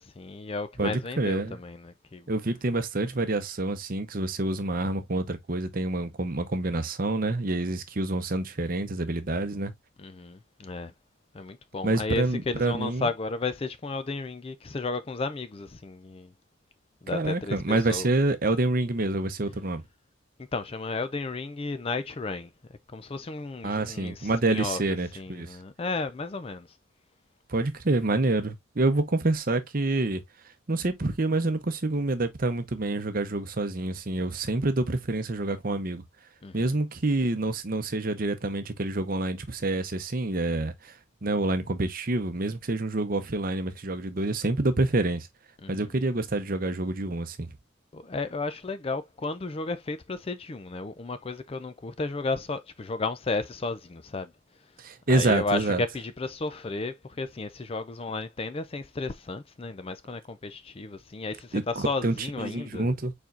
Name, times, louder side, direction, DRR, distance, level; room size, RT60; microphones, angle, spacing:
voice 1, 0.0-2.3 10.0-10.9 11.3-16.3 17.0-18.1 20.5-22.5 22.9-24.8 25.2-26.7 36.4-36.7 45.6-45.8 47.9-54.3 55.1-63.0, left 3 dB, 30° left, 0.4 m, -33 dB
voice 2, 0.8-1.6 2.3-9.7 11.8-13.1 17.1-19.8 23.6-25.6 27.5-30.2 30.7-36.0 36.5-45.3 45.7-47.6 54.8-55.8 61.5-63.1, right 2 dB, 45° right, 0.7 m, -27 dB
4.6 x 4.3 x 2.5 m
head